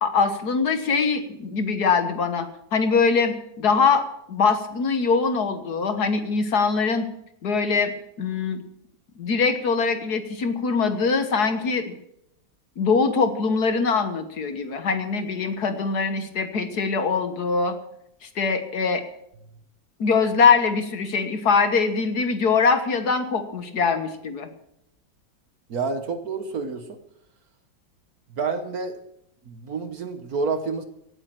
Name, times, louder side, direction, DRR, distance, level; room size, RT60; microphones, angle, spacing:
voice 1, 0.0-7.1 7.4-7.9 8.2-8.6 9.2-11.9 12.8-17.8 18.3-19.0 20.0-24.5, left 5 dB, 55° left, 9 dB, 1.7 m, -22 dB
voice 2, 25.7-27.0 28.3-29.0 29.5-30.8, right 4 dB, 55° right, 9 dB, 1.4 m, -29 dB
17.0 x 8.8 x 7.5 m, 0.79 s
omnidirectional pair, 2.1 m